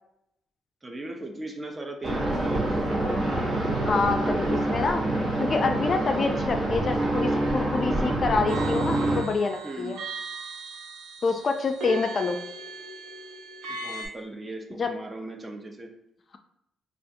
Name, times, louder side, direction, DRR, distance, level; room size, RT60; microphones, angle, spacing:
voice 1, 0.8-2.8 9.6-10.0 11.9-12.0 13.7-15.9, right 2 dB, 25° right, 3 dB, 0.6 m, -38 dB
sound 1, 2.0-9.2, right 1 dB, 55° right, 1.1 m, -26 dB
voice 2, 3.8-10.0 11.2-12.4 14.8-14.9, left 4 dB, 40° left, 5 dB, 0.4 m, -27 dB
sound 2, 8.5-14.1, right 2 dB, 85° right, 0.6 m, -38 dB
3.4 x 2.5 x 2.7 m, 0.80 s
cardioid pair, 90°, 0 cm